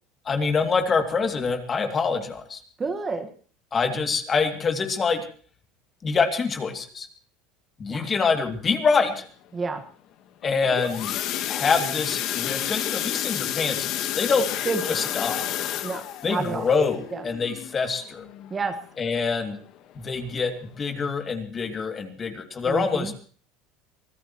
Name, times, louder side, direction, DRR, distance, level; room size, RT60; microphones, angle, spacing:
voice 1, 0.3-2.6 3.7-5.2 6.0-7.1 7.8-9.3 10.4-11.1 11.5-13.9 14.1-14.5 14.9-15.5 16.2-18.2 19.0-19.6 19.9-20.5 20.8-23.1, left 5 dB, 25° left, 5 dB, 2.6 m, -25 dB
voice 2, 2.8-3.3 7.9-8.1 9.5-9.8 14.6-15.0 15.8-16.7 17.1-17.2 18.5-18.7 22.6-23.1, right 4 dB, 20° right, 7 dB, 1.6 m, -29 dB
sound 1, 10.4-19.1 19.5-19.8 20.1-20.2 20.6-20.7, left 12 dB, 55° left, 1.5 m, -30 dB
24.0 x 16.0 x 3.1 m, 0.43 s
supercardioid pair, 120°, 0 cm